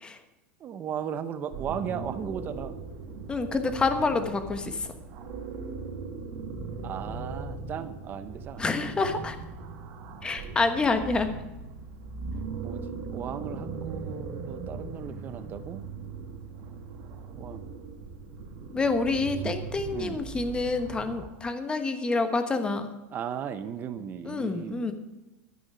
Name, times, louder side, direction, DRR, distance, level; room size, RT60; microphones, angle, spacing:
voice 1, 0.6-2.8 6.8-8.9 12.5-15.8 17.3-17.7 19.4-19.5 19.9-20.2 23.1-24.9, right 8 dB, 25° right, 12 dB, 0.9 m, -36 dB
sound 1, 1.5-21.3, right 4 dB, 50° right, 2.1 m, -39 dB
voice 2, 3.3-4.9 8.6-9.4 10.2-11.3 18.7-22.9 24.2-24.9, left 3 dB, 15° left, 8 dB, 1.2 m, -27 dB
12.5 x 9.8 x 5.7 m, 1.0 s
supercardioid pair, 150°, 7 cm